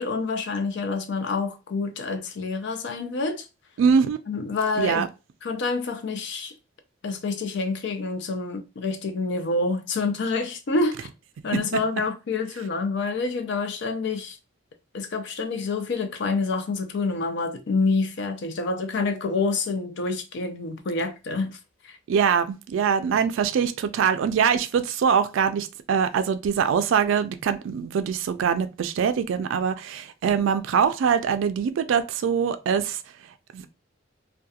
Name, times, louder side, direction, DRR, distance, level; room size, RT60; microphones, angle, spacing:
voice 1, 0.0-3.4 4.3-5.0 5.4-6.5 7.0-11.1 11.4-14.4 14.9-21.6 21.8-22.0, left 3 dB, 60° left, 0.4 m, -27 dB
voice 2, 3.8-4.2 4.8-5.1 22.1-33.0 33.5-33.6, right 7 dB, 70° right, 0.3 m, -23 dB
2.3 x 2.2 x 2.7 m
head